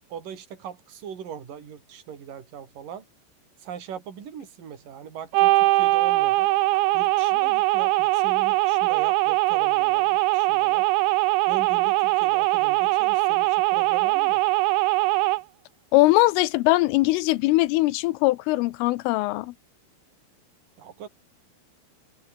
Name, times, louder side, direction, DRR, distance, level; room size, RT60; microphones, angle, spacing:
voice 1, 0.1-3.0 3.6-6.5 6.9-10.9 11.5-14.4 20.8-21.1, right 8 dB, 45° right, 4.9 m, -40 dB
sound 1, 5.3-15.4, right 19 dB, 80° right, 2.9 m, -21 dB
voice 2, 15.9-19.5, left 19 dB, 80° left, 3.3 m, -21 dB
omnidirectional pair, 5.8 m